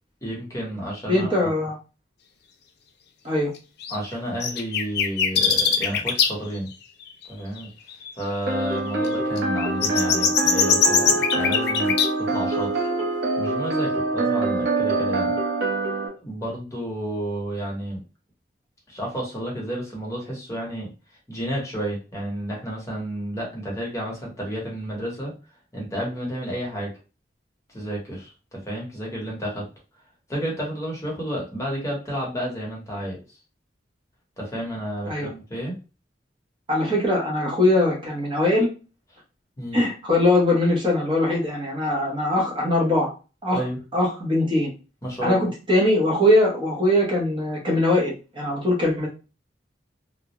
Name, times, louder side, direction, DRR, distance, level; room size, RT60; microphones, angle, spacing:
voice 1, 0.2-1.5 3.9-6.7 7.3-7.7 8.2-12.9 13.4-15.4 16.1-18.0 18.9-20.9 21.3-25.3 25.7-26.9 27.7-29.6 30.3-33.2 34.4-35.7 39.6-39.8 43.5-43.8 45.0-45.5, equal, 15° left, -3 dB, 0.9 m, -31 dB
voice 2, 1.1-1.8 3.2-3.5 35.0-35.3 36.7-38.7 39.7-43.1 43.4-43.6 43.9-44.7 45.2-49.1, left 1 dB, 30° right, -3 dB, 0.7 m, -21 dB
sound 1, 3.8-4.0 4.4-6.3 6.7-6.8 7.2-7.3 7.6-7.7 7.9-8.1 9.0-12.1, left 7 dB, 60° left, 0.4 m, -21 dB
sound 2, 8.5-16.1, right 2 dB, 75° right, 0.7 m, -25 dB
2.3 x 2.0 x 2.8 m, 0.33 s
head